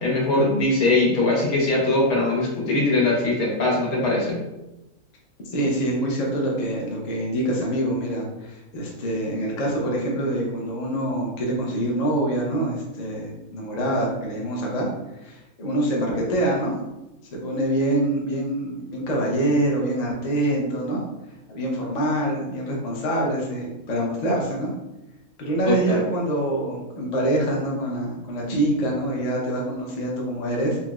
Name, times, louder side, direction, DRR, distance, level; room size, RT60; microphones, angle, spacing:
voice 1, 0.0-4.4 25.7-26.0, left 2 dB, 85° left, -3 dB, 1.4 m, -21 dB
voice 2, 5.5-14.9 15.2-16.8 17.3-21.0 21.5-24.7 25.4-30.8, right 1 dB, 50° left, -2 dB, 0.5 m, -25 dB
3.8 x 2.1 x 2.3 m, 0.97 s
omnidirectional pair, 1.5 m